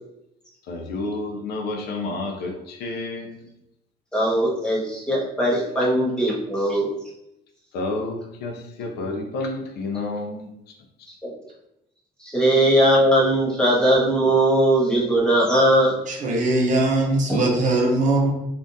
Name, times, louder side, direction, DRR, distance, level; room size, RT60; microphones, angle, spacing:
voice 1, 0.7-3.5 5.8-5.9 7.7-11.1, left 2 dB, 70° left, 3 dB, 0.5 m, -30 dB
voice 2, 4.1-6.9 11.2-11.3 12.2-15.9, right 1 dB, 5° left, -5 dB, 1.2 m, -19 dB
voice 3, 16.1-18.3, right 2 dB, 50° right, 0 dB, 0.8 m, -21 dB
3.4 x 2.5 x 2.6 m, 0.84 s
cardioid pair, 110°, 17 cm